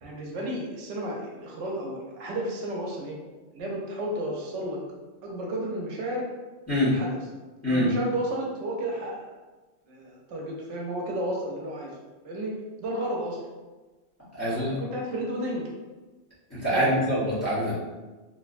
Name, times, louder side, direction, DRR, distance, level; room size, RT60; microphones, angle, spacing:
voice 1, 0.0-3.2 3.5-4.8 5.2-6.3 6.9-7.2 7.6-9.3 9.9-12.0 12.2-12.5 12.8-13.4 14.4-15.7 16.7-16.9, right 1 dB, 85° right, -1 dB, 0.9 m, -32 dB
voice 2, 14.3-14.8 16.5-17.7, equal, 15° left, -10 dB, 0.9 m, -25 dB
2.7 x 2.1 x 2.4 m, 1.2 s
omnidirectional pair, 1.2 m